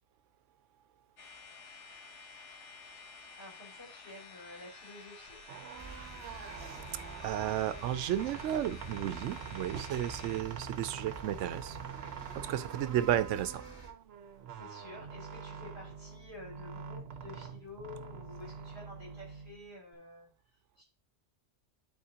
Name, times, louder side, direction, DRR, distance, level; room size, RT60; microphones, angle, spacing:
sound 1, 1.2-10.4, left 4 dB, 80° left, 1.3 m, -52 dB
voice 1, 3.4-5.4 12.6-12.7 14.4-20.3 20.8-20.9, left 2 dB, 60° left, 3.4 m, -50 dB
sound 2, 5.4-19.9, right 7 dB, 60° right, 0.9 m, -45 dB
sound 3, 5.8-13.9, right 2 dB, 20° right, 1.3 m, -48 dB
voice 2, 7.2-11.8 12.3-13.6, right 11 dB, 90° right, 0.9 m, -33 dB
11.0 x 4.3 x 2.8 m
omnidirectional pair, 1.2 m